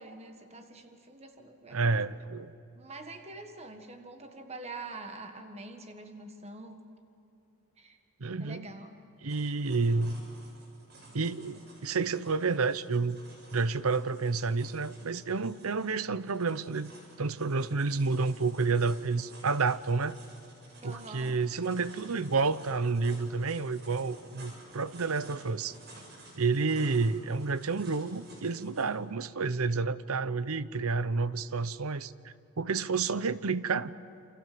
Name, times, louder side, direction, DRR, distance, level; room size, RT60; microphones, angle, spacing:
voice 1, 0.0-1.9 2.8-6.8 7.8-8.0 8.4-9.0 20.8-21.4, right 2 dB, 30° right, 5 dB, 1.6 m, -45 dB
voice 2, 1.7-2.5 8.2-8.7 9.2-10.2 11.1-13.2 13.5-16.9 17.2-20.2 20.8-25.8 26.4-33.9, right 4 dB, 75° right, 15 dB, 0.8 m, -30 dB
sound 1, 9.3-28.8, right 1 dB, 50° right, 7.0 m, -53 dB
28.5 x 27.0 x 7.7 m, 2.9 s
head